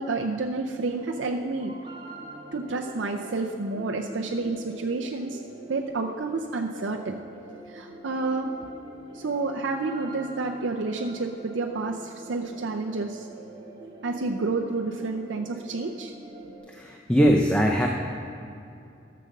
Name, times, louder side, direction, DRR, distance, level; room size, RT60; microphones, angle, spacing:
voice 1, 0.0-1.7 2.5-5.4 5.7-7.2 7.7-8.5 9.1-13.3 14.0-16.1, right 3 dB, 80° right, 1 dB, 0.6 m, -29 dB
sound 1, 0.6-16.6, right 2 dB, 30° right, 1.7 m, -44 dB
voice 2, 16.7-17.9, equal, 5° left, 0 dB, 0.6 m, -21 dB
13.5 x 6.6 x 6.5 m, 2.6 s
head